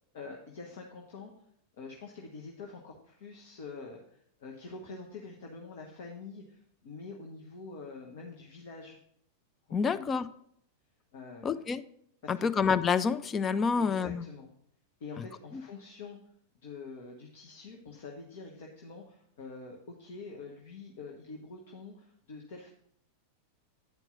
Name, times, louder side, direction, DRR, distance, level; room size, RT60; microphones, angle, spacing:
voice 1, 0.1-1.3 1.7-9.0 9.8-10.2 11.1-11.6 12.2-12.5 13.8-14.5 15.0-16.2 16.6-22.7, left 4 dB, 55° left, 0 dB, 1.1 m, -46 dB
voice 2, 9.7-10.3 11.4-11.8 12.3-14.2 15.5-15.6, left 5 dB, 20° left, 11 dB, 0.4 m, -28 dB
9.4 x 4.5 x 5.2 m, 0.68 s
figure-of-eight pair, 90°, 0 cm